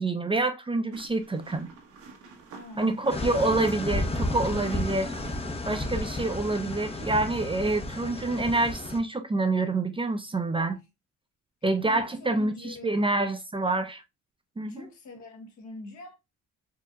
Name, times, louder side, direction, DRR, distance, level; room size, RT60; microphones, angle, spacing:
voice 1, 0.0-1.7 2.8-5.1 5.7-10.8 11.6-14.0 14.6-14.9, right 2 dB, 15° right, 0.6 m, -27 dB
sound 1, 0.9-6.3, right 4 dB, 85° right, 1.4 m, -48 dB
voice 2, 2.5-3.1 4.5-4.8 11.9-13.0 14.7-16.2, left 3 dB, 65° left, 1.6 m, -43 dB
sound 2, 3.1-9.0, left 2 dB, 20° left, 0.7 m, -32 dB
4.6 x 2.8 x 2.3 m
cardioid pair, 90°, 30 cm